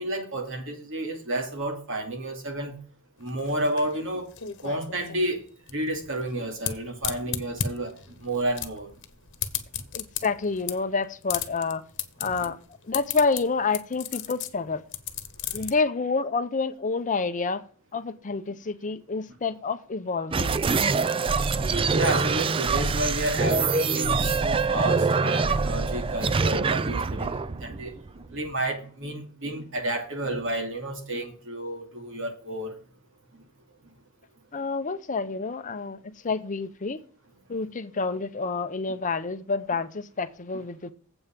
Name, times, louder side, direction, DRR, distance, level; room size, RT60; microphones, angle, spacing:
voice 1, 0.0-2.7 3.2-4.3 4.6-5.4 5.7-8.9 12.4-12.5 20.9-21.0 21.8-32.8 40.5-40.6, right 1 dB, 60° right, 2.5 m, -31 dB
sound 1, 3.2-15.7, left 9 dB, 60° left, 1.1 m, -35 dB
voice 2, 9.9-11.8 12.2-12.6 12.9-14.8 15.5-17.6 17.9-20.6 34.5-36.0 36.2-37.0 37.5-40.9, left 4 dB, 35° left, 0.6 m, -28 dB
sound 2, 20.3-28.5, right 4 dB, 25° right, 0.4 m, -25 dB
8.0 x 5.5 x 7.3 m
head